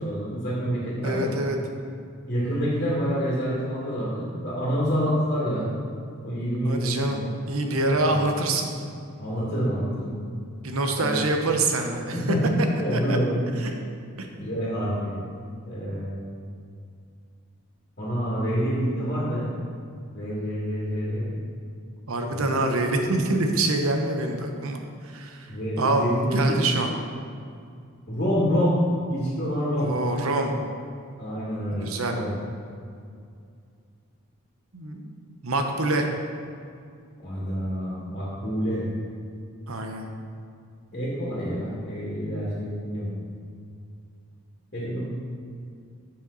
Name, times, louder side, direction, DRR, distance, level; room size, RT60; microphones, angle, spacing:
voice 1, 0.0-1.3 2.3-5.7 6.2-7.3 7.9-8.1 9.2-10.1 10.9-11.3 12.1-13.4 14.3-15.2 15.7-16.2 18.0-19.5 20.1-21.3 22.3-22.6 25.5-26.6 28.1-28.8 29.1-29.9 31.2-32.3 37.2-38.8 40.9-43.1 44.7-45.0, equal, 45° left, -8 dB, 2.2 m, -27 dB
voice 2, 1.0-1.6 6.6-7.2 7.5-8.7 10.6-12.2 12.9-13.2 13.6-13.8 14.2-14.3 22.1-25.5 25.8-26.1 26.3-26.9 29.8-30.5 31.7-32.2 34.7-36.1 39.7-40.1, right 2 dB, 85° right, 4 dB, 0.9 m, -26 dB
7.5 x 7.2 x 4.1 m, 2.3 s
head